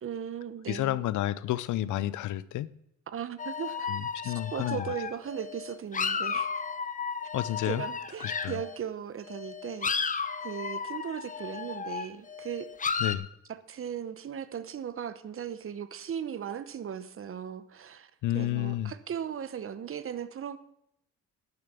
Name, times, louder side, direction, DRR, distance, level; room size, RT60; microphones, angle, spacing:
voice 1, 0.0-1.0 3.1-3.9 4.2-6.6 7.7-12.7 13.5-20.6, right 8 dB, 45° right, 1.0 m, -37 dB
voice 2, 0.7-2.8 3.9-4.9 7.3-7.8 8.2-8.6 13.0-13.3 18.2-18.9, left 14 dB, 80° left, 0.6 m, -30 dB
sound 1, 3.4-8.8 9.3-13.2, left 5 dB, 25° left, 0.8 m, -34 dB
10.5 x 6.8 x 6.8 m
cardioid pair, 90°, 30 cm